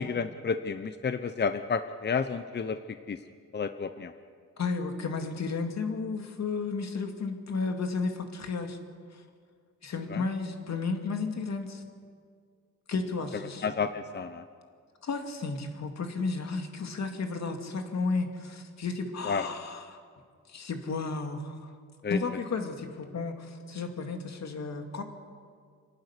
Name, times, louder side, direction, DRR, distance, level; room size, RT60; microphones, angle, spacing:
voice 1, 0.0-2.8 3.1-3.2 3.5-4.1 10.1-10.2 13.6-14.4 19.3-19.5 22.0-22.2, left 5 dB, 35° left, 9 dB, 0.9 m, -30 dB
voice 2, 4.6-8.8 9.1-9.2 9.8-11.8 12.9-13.7 15.0-20.0 20.5-21.7 22.1-25.0, left 4 dB, 60° left, 4 dB, 2.6 m, -33 dB
27.5 x 12.0 x 9.9 m, 2.1 s
cardioid pair, 105°, 31 cm